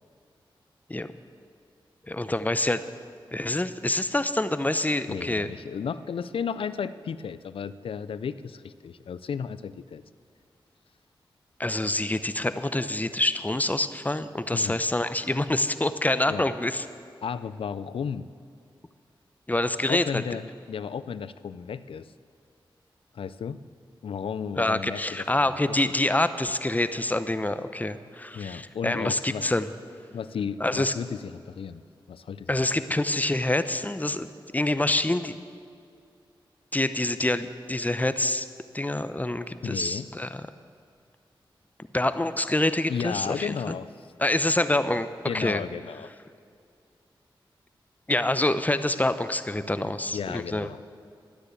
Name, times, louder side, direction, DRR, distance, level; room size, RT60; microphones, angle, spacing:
voice 1, 2.1-2.8 3.3-5.5 11.6-16.8 19.5-20.2 24.6-29.7 30.6-30.9 32.5-35.3 36.7-38.5 38.7-40.5 41.9-43.8 44.2-45.1 45.3-45.6 48.1-50.7, left 1 dB, 20° left, 12 dB, 0.7 m, -26 dB
voice 2, 5.1-10.0 14.5-14.8 16.3-16.5 17.2-18.3 19.9-22.1 23.1-23.6 24.0-25.9 28.3-29.4 30.1-31.8 32.1-32.6 32.9-33.0 39.6-40.1 42.9-44.1 45.3-46.1 49.8-50.8, left 7 dB, 85° left, 15 dB, 0.4 m, -34 dB
12.0 x 9.9 x 8.4 m, 2.4 s
cardioid pair, 55°, 9 cm